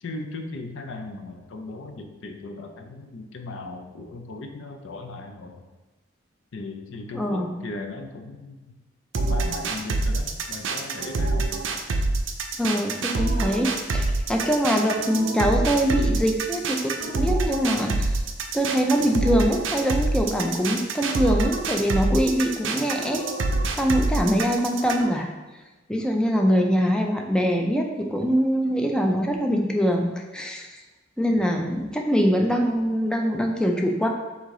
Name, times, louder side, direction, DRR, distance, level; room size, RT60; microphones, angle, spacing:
voice 1, 0.0-5.6 6.5-8.7 9.1-11.5 31.3-31.6, left 2 dB, 65° left, 5 dB, 0.5 m, -37 dB
voice 2, 7.1-7.5 12.6-18.2 18.5-23.2 23.7-25.3 25.9-30.8 31.2-34.1, equal, 5° left, 2 dB, 0.4 m, -23 dB
sound 1, 9.1-25.1, right 2 dB, 65° right, 0.5 m, -26 dB
3.7 x 2.7 x 4.7 m, 1.2 s
head